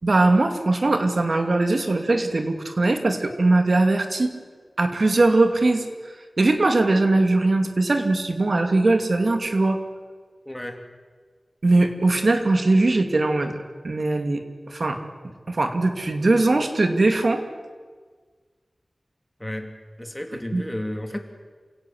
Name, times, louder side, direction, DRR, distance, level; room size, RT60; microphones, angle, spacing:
voice 1, 0.0-4.3 4.8-5.8 6.4-9.8 11.6-13.6 13.8-14.4 14.7-15.0 15.5-17.5 20.5-20.6, right 2 dB, 70° right, 6 dB, 2.5 m, -20 dB
voice 2, 10.4-10.8 19.4-19.7 20.0-21.2, left 1 dB, 10° left, 5 dB, 3.0 m, -32 dB
28.0 x 17.0 x 8.0 m, 1.5 s
wide cardioid pair, 55°, 0 cm